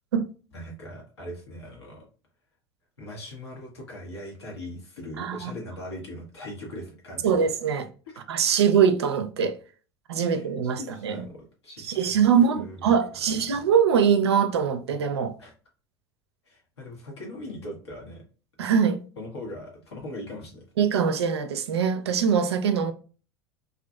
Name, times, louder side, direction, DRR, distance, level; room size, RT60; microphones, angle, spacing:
voice 1, 0.5-2.0 3.0-7.8 10.2-12.2 12.5-12.9 15.4-15.5 16.5-18.2 19.2-20.9, left 1 dB, 85° left, 1.0 m, -40 dB
voice 2, 5.2-5.5 7.2-7.9 8.3-9.6 10.1-11.2 11.8-15.3 18.6-19.0 20.8-22.9, right 7 dB, 80° right, 0.4 m, -23 dB
2.6 x 2.4 x 2.2 m
hypercardioid pair, 75°, 14 cm